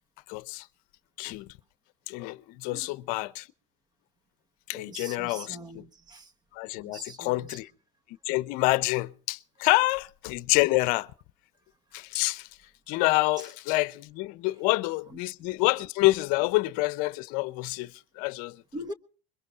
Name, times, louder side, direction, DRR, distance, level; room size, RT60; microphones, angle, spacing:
voice 1, 0.3-0.7 1.2-1.5 2.1-3.5 4.7-5.8 6.5-7.7 8.3-11.1 11.9-12.5 12.9-18.6, left 21 dB, 65° left, 0.7 m, -27 dB
voice 2, 4.7-6.3 6.8-7.6 13.4-13.5 18.7-18.9, right 1 dB, 25° right, 1.4 m, -42 dB
26.0 x 22.0 x 2.5 m
supercardioid pair, 105°, 16 cm